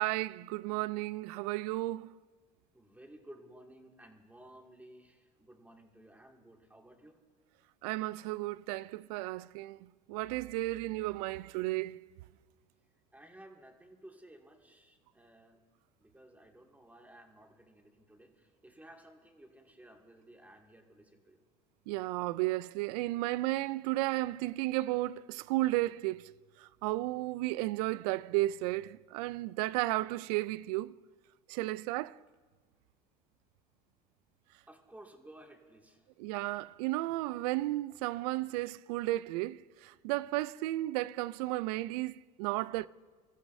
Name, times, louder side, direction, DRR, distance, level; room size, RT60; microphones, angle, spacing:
voice 1, 0.0-2.1 7.8-12.0 21.9-30.9 31.5-32.2 36.2-42.9, right 18 dB, 75° right, 0.4 m, -33 dB
voice 2, 2.7-7.2 13.1-15.6 16.0-21.4 34.7-36.1, right 1 dB, 10° right, 2.3 m, -56 dB
25.0 x 14.5 x 2.7 m
hypercardioid pair, 80°, 20 cm